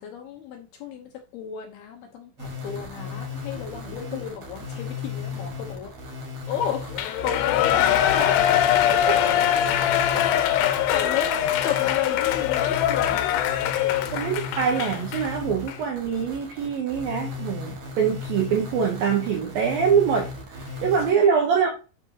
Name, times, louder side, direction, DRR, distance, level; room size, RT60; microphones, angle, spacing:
voice 1, 0.0-5.9 6.5-7.0 7.2-8.7 10.6-11.4 11.6-13.5 20.7-21.3, left 8 dB, 75° left, 3 dB, 2.5 m, -33 dB
sound 1, 2.4-21.1, left 4 dB, 50° right, 2.2 m, -36 dB
Shout / Cheering, 7.0-15.3 15.7-15.8, left 11 dB, 90° left, 3.2 m, -22 dB
voice 2, 14.1-21.7, right 7 dB, 75° right, 2 dB, 2.2 m, -24 dB
8.4 x 6.0 x 2.8 m, 0.33 s
omnidirectional pair, 5.4 m